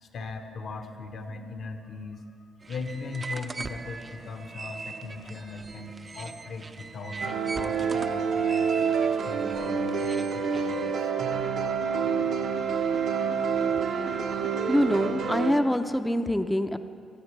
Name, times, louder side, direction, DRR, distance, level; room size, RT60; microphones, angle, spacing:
voice 1, 0.0-2.2 2.7-9.0 9.2-11.1, left 3 dB, 60° left, 5 dB, 1.2 m, -39 dB
sound 1, 2.6-11.0, right 3 dB, 30° right, 0.6 m, -41 dB
sound 2, 7.2-15.5, right 6 dB, 80° right, 1.2 m, -27 dB
voice 2, 14.7-16.8, left 1 dB, 5° left, 9 dB, 0.6 m, -25 dB
18.5 x 13.5 x 3.3 m, 2.4 s
cardioid pair, 90°, 0 cm